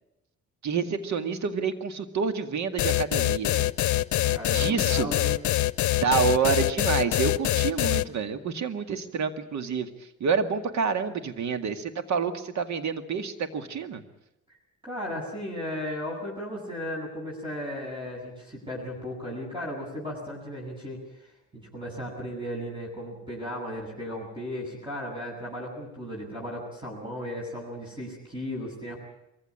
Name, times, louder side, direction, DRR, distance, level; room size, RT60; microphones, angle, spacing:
voice 1, 0.6-3.7 4.5-5.1 6.0-14.0, right 6 dB, 65° right, 9 dB, 2.2 m, -28 dB
sound 1, 2.8-8.0, left 15 dB, 75° left, 0.7 m, -24 dB
voice 2, 4.3-5.4 14.8-29.0, equal, 15° right, -2 dB, 8.0 m, -36 dB
23.0 x 15.5 x 9.9 m, 0.87 s
cardioid pair, 90°, 30 cm